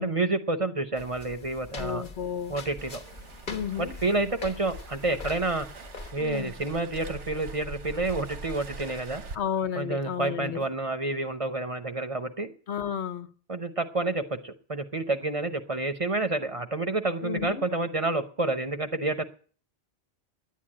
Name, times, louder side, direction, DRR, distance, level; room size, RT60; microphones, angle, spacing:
voice 1, 0.0-2.0 2.5-3.0 3.8-5.7 6.1-9.2 9.8-12.5 13.5-19.2, right 2 dB, 35° right, 0.8 m, -29 dB
sound 1, 0.9-6.1, left 3 dB, 45° left, 1.2 m, -42 dB
voice 2, 1.8-2.6 3.5-3.9 6.2-6.5 9.3-10.6 12.7-13.3 17.2-17.6, left 8 dB, 75° left, 1.2 m, -32 dB
Waves surf, 2.8-9.3, right 3 dB, 85° right, 1.4 m, -43 dB
11.0 x 9.4 x 8.7 m
omnidirectional pair, 1.2 m